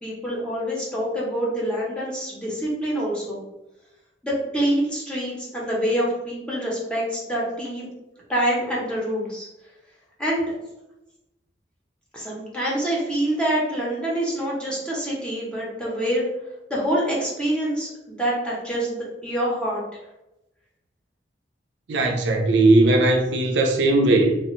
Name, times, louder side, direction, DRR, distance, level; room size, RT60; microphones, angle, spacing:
voice 1, 0.0-3.4 4.2-7.9 8.3-9.5 10.2-10.5 12.1-16.2 16.7-19.8, right 1 dB, 5° left, -5 dB, 0.7 m, -26 dB
voice 2, 21.9-24.4, right 2 dB, 75° right, 2 dB, 0.5 m, -18 dB
3.2 x 2.1 x 3.0 m, 0.95 s
head